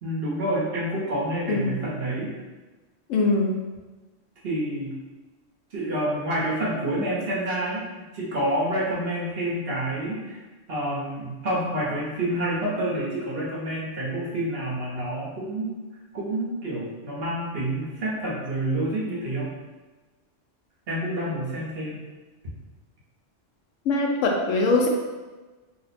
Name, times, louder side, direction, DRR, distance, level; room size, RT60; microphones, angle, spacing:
voice 1, 0.0-2.3 4.4-4.9 5.7-10.4 10.7-15.8 16.1-19.5 20.9-22.0, right 1 dB, 55° right, -6 dB, 1.1 m, -28 dB
voice 2, 3.1-3.6 23.9-24.9, left 3 dB, 85° left, 1 dB, 1.0 m, -22 dB
2.9 x 2.1 x 4.1 m, 1.2 s
omnidirectional pair, 1.3 m